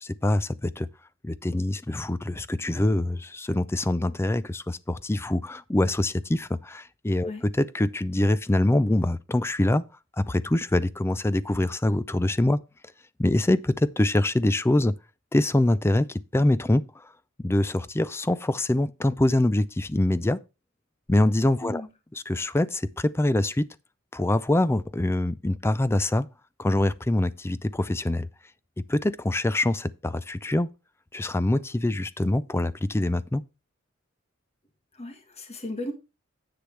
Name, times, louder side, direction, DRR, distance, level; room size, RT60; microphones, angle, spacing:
voice 1, 0.0-0.9 1.2-7.3 7.6-9.8 10.2-12.6 13.2-14.9 15.3-17.1 17.4-20.4 21.1-21.8 22.3-23.7 24.1-26.3 26.6-28.3 28.9-30.7 31.1-33.4, left 1 dB, 10° left, 0.4 m, -24 dB
voice 2, 34.9-35.9, left 1 dB, 30° left, 1.6 m, -36 dB
10.0 x 7.8 x 3.3 m
head